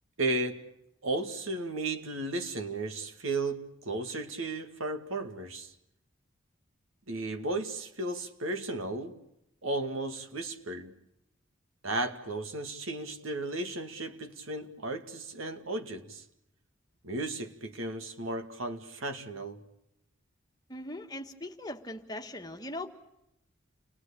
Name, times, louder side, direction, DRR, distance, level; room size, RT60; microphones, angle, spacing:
voice 1, 0.2-0.7 1.0-5.7 7.1-9.1 9.6-10.9 11.8-16.2 17.0-19.6, right 2 dB, 85° right, 2.2 m, -34 dB
voice 2, 20.7-22.9, left 1 dB, 20° left, 1.7 m, -40 dB
30.0 x 20.5 x 8.6 m
head